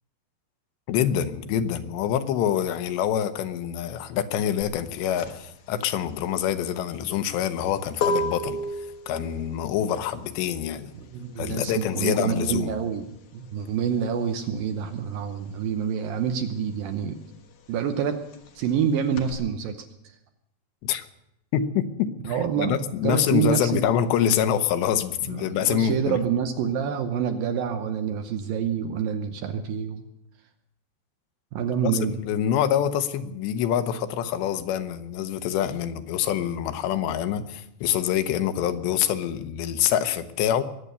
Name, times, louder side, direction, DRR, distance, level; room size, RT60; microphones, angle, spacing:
voice 1, 0.9-10.9 11.4-12.7 20.8-21.1 21.5-26.2 31.8-31.9 32.2-40.6, left 9 dB, 90° left, 10 dB, 3.1 m, -26 dB
sound 1, 4.6-14.8 15.1-19.3, left 1 dB, 60° left, 2.4 m, -34 dB
voice 2, 10.9-13.1 13.3-17.2 17.7-18.2 18.6-19.9 22.2-22.8 23.0-23.9 25.3-30.0 31.5-32.2, right 7 dB, 75° right, 7 dB, 2.3 m, -27 dB
22.5 x 8.7 x 6.8 m, 0.80 s
omnidirectional pair, 4.9 m